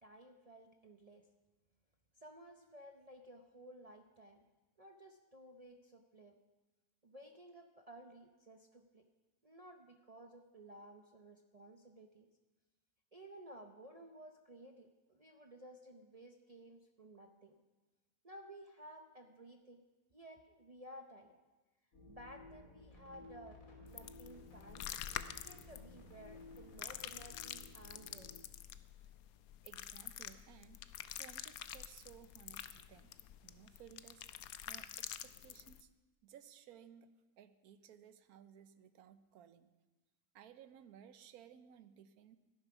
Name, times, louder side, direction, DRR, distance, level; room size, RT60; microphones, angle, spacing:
voice 1, 0.0-1.3 2.1-4.4 4.8-6.4 7.0-9.0 9.4-12.3 13.1-17.5 18.2-19.8 20.1-21.4 22.1-25.0 25.4-28.5, right 1 dB, 45° right, 3 dB, 0.5 m, -56 dB
sound 1, 21.9-28.4, left 2 dB, 55° left, 3.1 m, -57 dB
sound 2, 23.9-35.8, left 11 dB, 70° left, 1.0 m, -48 dB
voice 2, 29.6-30.8 31.1-33.2 33.4-34.2 34.7-35.9 36.2-37.1 37.4-39.7 40.3-42.4, right 9 dB, 70° right, 11 dB, 1.1 m, -59 dB
13.5 x 10.5 x 5.9 m, 1.2 s
omnidirectional pair, 1.7 m